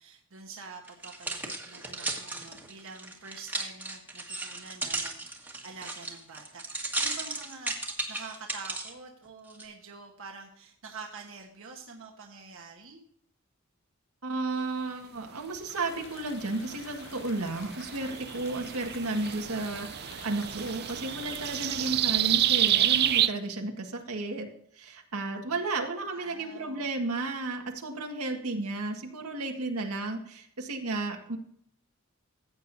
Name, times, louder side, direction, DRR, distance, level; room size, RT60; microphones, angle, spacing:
voice 1, 0.0-13.1 26.1-26.9, right 4 dB, 65° right, 1 dB, 1.3 m, -47 dB
sound 1, 0.9-8.9 9.5-9.6, right 2 dB, 10° right, 1.5 m, -35 dB
voice 2, 14.2-24.5 24.7-31.4, right 2 dB, 90° right, 2 dB, 1.8 m, -33 dB
sound 2, 15.7-22.0, left 6 dB, 60° left, 0.8 m, -49 dB
sound 3, 16.5-23.3, right 11 dB, 50° right, 0.5 m, -29 dB
14.5 x 8.6 x 2.7 m, 0.66 s
head